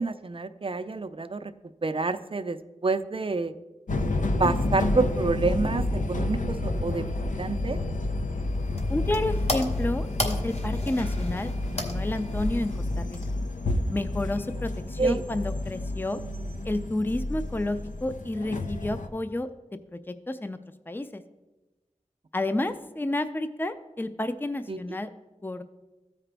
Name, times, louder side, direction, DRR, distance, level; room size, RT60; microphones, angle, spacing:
voice 1, 0.0-1.5 1.8-2.6 2.8-3.5 4.4-7.8 15.0-15.2 24.7-24.8, right 3 dB, 45° right, 11 dB, 0.4 m, -28 dB
sound 1, 3.9-19.1, left 2 dB, 85° left, 0.6 m, -30 dB
sound 2, 8.3-13.7, left 1 dB, 55° left, 1.3 m, -36 dB
voice 2, 8.9-13.2 13.9-16.2 16.6-19.5 19.9-20.6 20.9-21.2 22.3-25.1 25.4-25.6, left 1 dB, 15° left, 10 dB, 0.4 m, -30 dB
14.0 x 4.9 x 3.3 m, 1.1 s
wide cardioid pair, 40°, 13 cm